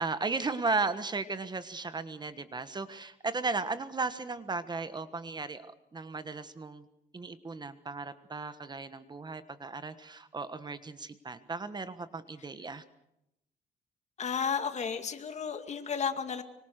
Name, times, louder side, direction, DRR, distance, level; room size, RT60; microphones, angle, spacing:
voice 1, 0.0-6.8 7.1-12.8, right 3 dB, 25° right, 11 dB, 1.4 m, -35 dB
voice 2, 14.2-16.4, left 6 dB, 40° left, 8 dB, 2.3 m, -33 dB
25.0 x 24.5 x 6.6 m, 0.84 s
cardioid pair, 125°, 17 cm